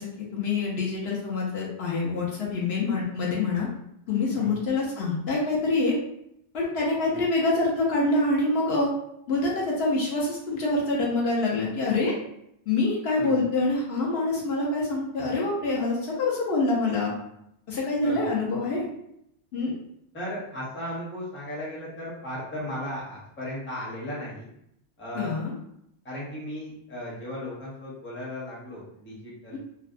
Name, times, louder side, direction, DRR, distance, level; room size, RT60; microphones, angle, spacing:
voice 1, 0.0-3.7 4.1-6.0 6.5-8.9 9.3-12.1 12.7-17.1 17.7-18.9 19.5-19.7 25.1-25.5 29.5-29.6, left 3 dB, 70° left, -3 dB, 0.8 m, -26 dB
voice 2, 17.9-18.4 20.1-24.5 25.0-25.3 26.0-29.6, equal, 15° left, -6 dB, 0.6 m, -36 dB
2.6 x 2.1 x 2.4 m, 0.76 s
omnidirectional pair, 1.2 m